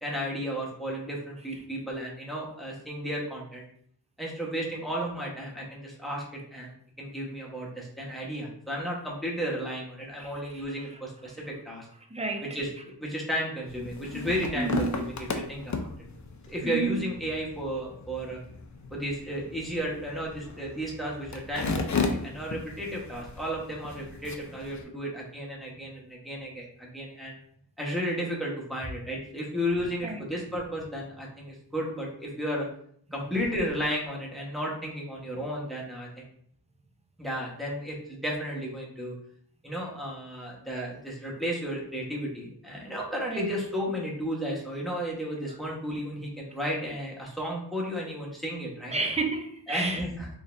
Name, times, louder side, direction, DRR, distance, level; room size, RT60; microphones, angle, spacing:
voice 1, 0.0-3.7 4.2-6.2 6.5-11.9 12.4-15.9 16.5-18.4 18.9-27.4 27.8-32.7 33.1-36.3 37.2-39.1 39.6-49.0 49.7-50.3, equal, ahead, -3 dB, 1.2 m, -33 dB
voice 2, 12.1-12.6 14.6-15.1 16.6-17.0 30.0-30.2 43.2-43.5 48.9-50.0, right 3 dB, 15° right, 4 dB, 0.6 m, -30 dB
sound 1, 13.7-24.8, left 4 dB, 45° left, 0.5 m, -35 dB
3.9 x 3.4 x 2.6 m, 0.63 s
wide cardioid pair, 90°, 42 cm